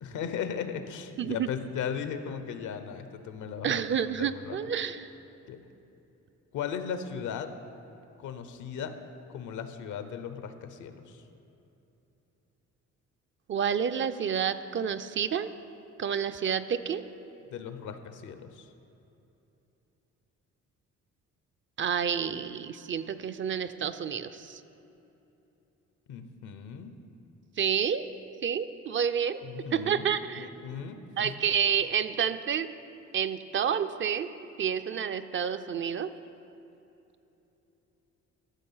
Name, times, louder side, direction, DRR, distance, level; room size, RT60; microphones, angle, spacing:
voice 1, 0.0-3.8 4.2-4.6 5.5-5.6 6.5-7.5 8.2-8.9 9.3-11.2 17.5-18.7 26.1-26.9 29.4-31.3, left 7 dB, 80° left, 9 dB, 0.8 m, -37 dB
voice 2, 1.2-1.5 3.6-5.1 13.5-15.5 16.0-17.0 21.8-24.6 27.6-28.0 28.4-29.4 29.7-30.5 31.2-32.7 33.1-34.3 34.6-36.1, right 8 dB, 40° right, 12 dB, 0.4 m, -29 dB
13.0 x 6.1 x 5.6 m, 3.0 s
cardioid pair, 90°, 30 cm